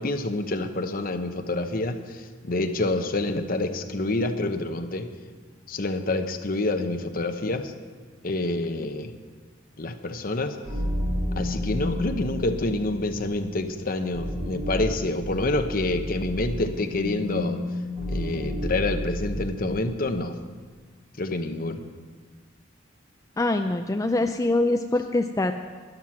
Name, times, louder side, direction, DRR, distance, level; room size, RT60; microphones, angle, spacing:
voice 1, 0.0-5.1 5.7-7.7 8.2-9.1 9.8-10.6 11.4-17.6 18.1-20.4 21.2-21.8, left 2 dB, 50° left, 7 dB, 0.9 m, -27 dB
sound 1, 10.6-19.8, left 1 dB, 35° right, 4.2 m, -31 dB
voice 2, 23.4-25.5, left 2 dB, 15° left, 6 dB, 0.4 m, -24 dB
12.0 x 11.0 x 6.0 m, 1.5 s
head